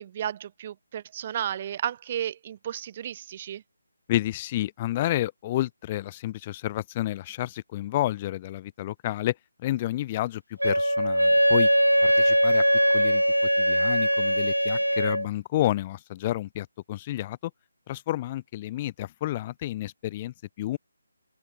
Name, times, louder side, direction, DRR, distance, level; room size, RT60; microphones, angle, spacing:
voice 1, 0.0-3.6, right 10 dB, 30° right, 3.8 m, -33 dB
voice 2, 4.1-11.7 12.0-12.6 12.9-13.2 13.6-17.5 17.9-20.8, left 14 dB, 20° left, 3.6 m, -30 dB
Wind instrument woodwind instrument, 10.6-15.3, equal, 85° right, 4.4 m, -21 dB
figure-of-eight pair, 150°, 0 cm